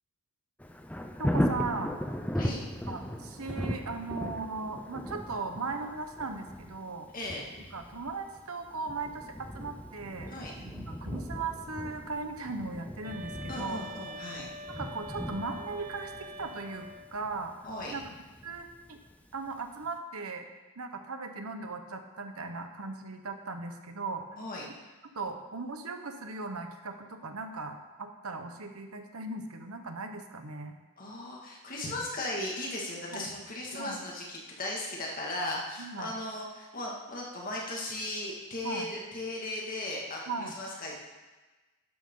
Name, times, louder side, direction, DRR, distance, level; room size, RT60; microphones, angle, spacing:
Thunder, 0.6-19.4 19.8-19.9, equal, 5° left, 0.5 m, -38 dB
voice 1, 1.2-2.0 2.9-7.1 7.7-13.8 14.7-17.5 17.9-18.1 18.4-19.0 19.3-20.5 20.8-24.2 25.1-30.7 33.1-33.3 33.7-34.0 35.8-36.1 38.6-38.9 40.3-40.5, right 3 dB, 75° right, 6 dB, 1.2 m, -38 dB
voice 2, 7.1-7.5 10.3-10.5 13.5-14.5 17.6-17.9 24.4-24.7 31.0-41.0, left 1 dB, 40° left, -2 dB, 2.2 m, -37 dB
sound 1, 13.0-17.2, right 1 dB, 40° right, 0.7 m, -44 dB
12.0 x 11.0 x 3.9 m, 1.2 s
head